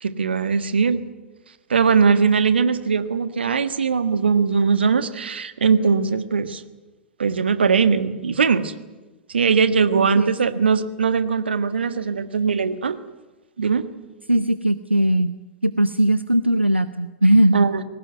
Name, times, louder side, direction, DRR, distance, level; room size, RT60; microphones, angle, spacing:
voice 1, 0.0-1.0 1.7-6.6 7.2-8.7 9.3-13.0 13.6-13.9 17.5-17.8, right 5 dB, 70° right, 11 dB, 1.5 m, -20 dB
voice 2, 10.0-10.3 14.3-15.3 15.6-17.7, right 1 dB, 90° right, 13 dB, 0.7 m, -19 dB
21.5 x 18.5 x 9.3 m, 1.2 s
figure-of-eight pair, 100°, 6 cm